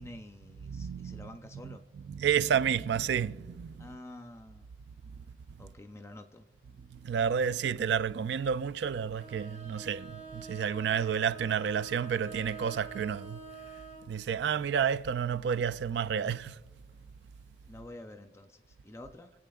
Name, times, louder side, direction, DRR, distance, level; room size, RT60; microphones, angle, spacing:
voice 1, 0.0-1.8 3.8-4.7 5.6-6.5 17.7-19.3, left 1 dB, 15° left, 0.4 m, -48 dB
voice 2, 0.6-3.9 6.8-13.4 14.1-16.6, right 7 dB, 70° right, 0.3 m, -31 dB
Bowed string instrument, 9.1-14.1, right 5 dB, 40° right, 1.9 m, -46 dB
23.0 x 8.3 x 2.3 m
head